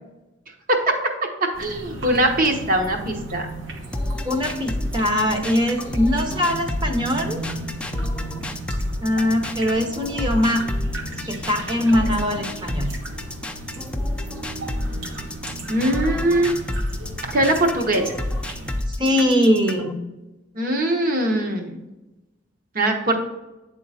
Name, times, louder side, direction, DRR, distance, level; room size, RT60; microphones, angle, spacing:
voice 1, 0.7-1.0 1.4-3.5 15.7-16.5 17.2-18.1 20.5-21.8 22.7-23.2, right 1 dB, 45° right, 3 dB, 1.0 m, -21 dB
sound 1, 1.5-18.8, right 1 dB, 75° right, 1.2 m, -35 dB
sound 2, 3.9-19.9, left 1 dB, 5° left, 0.5 m, -29 dB
voice 2, 4.3-7.4 9.0-10.6 11.3-12.9 19.0-19.9, left 1 dB, 25° right, 4 dB, 0.9 m, -21 dB
8.8 x 3.8 x 4.2 m, 1.0 s
head